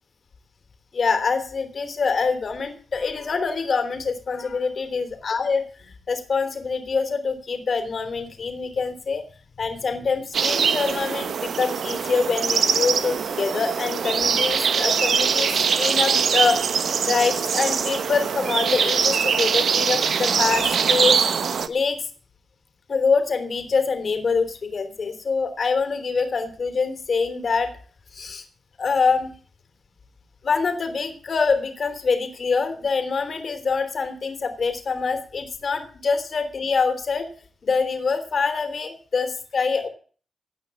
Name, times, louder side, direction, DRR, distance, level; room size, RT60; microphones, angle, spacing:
voice 1, 0.9-9.2 9.6-21.2 21.7-22.1 22.9-27.7 28.1-28.4 28.8-29.3 30.4-37.3 37.6-39.9, left 5 dB, 60° left, 9 dB, 3.2 m, -25 dB
sound 1, 10.3-21.7, right 6 dB, 75° right, 1.1 m, -22 dB
17.0 x 5.8 x 8.3 m, 0.41 s
supercardioid pair, 45°, 0 cm